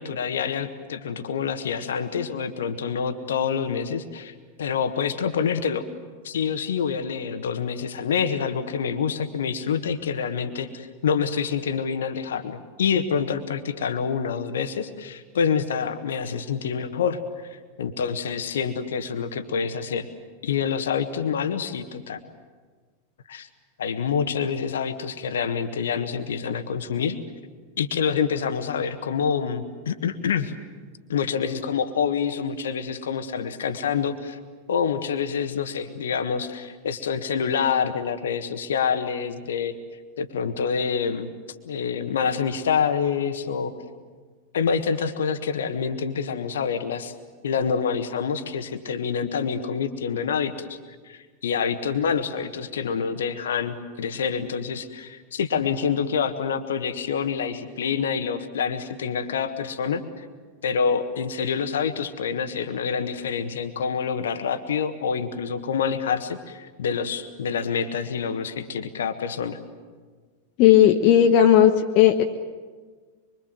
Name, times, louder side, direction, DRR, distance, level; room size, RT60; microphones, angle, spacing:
voice 1, 0.0-5.9 6.2-17.2 17.5-20.1 20.4-22.2 23.3-23.5 23.8-27.2 27.8-30.5 31.1-34.4 34.7-39.8 40.2-41.3 41.6-43.7 44.5-47.1 47.4-50.8 51.0-60.2 60.6-69.6, left 6 dB, 65° left, 10 dB, 1.5 m, -27 dB
voice 2, 70.6-72.2, left 10 dB, 40° left, 4 dB, 1.1 m, -15 dB
24.5 x 24.5 x 7.8 m, 1.5 s
figure-of-eight pair, 90°, 0 cm